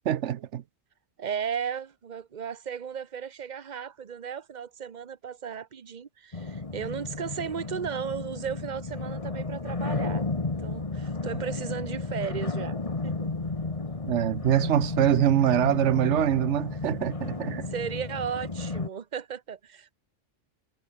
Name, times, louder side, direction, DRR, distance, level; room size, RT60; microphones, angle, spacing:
voice 1, 0.1-0.6 14.1-17.7, right 10 dB, 70° right, 1.0 m, -24 dB
voice 2, 1.2-10.2 10.6-13.3 17.7-19.9, right 7 dB, 40° right, 1.0 m, -35 dB
sound 1, 6.3-18.9, left 3 dB, 30° left, 1.5 m, -33 dB
omnidirectional pair, 1.3 m